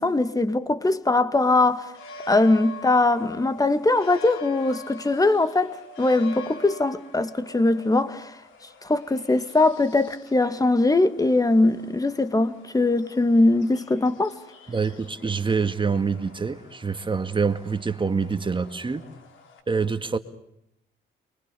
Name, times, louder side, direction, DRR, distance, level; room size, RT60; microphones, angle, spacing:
voice 1, 0.0-1.9 2.3-8.3 8.8-14.3, left 2 dB, 20° left, 2.2 m, -21 dB
sound 1, 1.4-19.6, left 1 dB, 80° left, 5.6 m, -46 dB
voice 2, 14.7-19.0 19.7-20.2, right 5 dB, 25° right, 2.0 m, -26 dB
29.5 x 24.0 x 7.0 m
cardioid pair, 90°, 20 cm